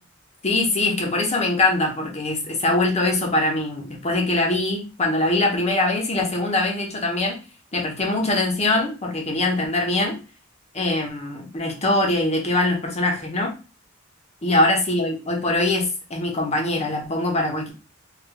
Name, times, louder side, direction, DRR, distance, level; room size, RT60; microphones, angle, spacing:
voice 1, 0.4-7.4 7.7-10.2 10.7-13.5 14.4-17.7, left 2 dB, 30° left, 1 dB, 0.8 m, -22 dB
3.3 x 3.2 x 2.2 m, 0.32 s
head